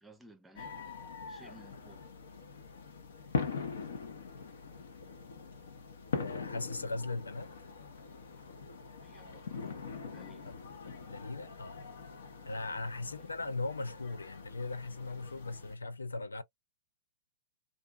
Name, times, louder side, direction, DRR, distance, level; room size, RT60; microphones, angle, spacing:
voice 1, 0.0-0.8 1.3-2.1 9.0-10.5 13.0-13.3, right 1 dB, 5° right, 0.7 m, -58 dB
sound 1, 0.6-15.8, left 5 dB, 70° left, 0.8 m, -42 dB
voice 2, 6.2-7.5 10.4-10.6 11.0-11.9 12.4-16.4, left 3 dB, 85° left, 0.4 m, -39 dB
2.5 x 2.2 x 2.4 m
figure-of-eight pair, 110°, 0 cm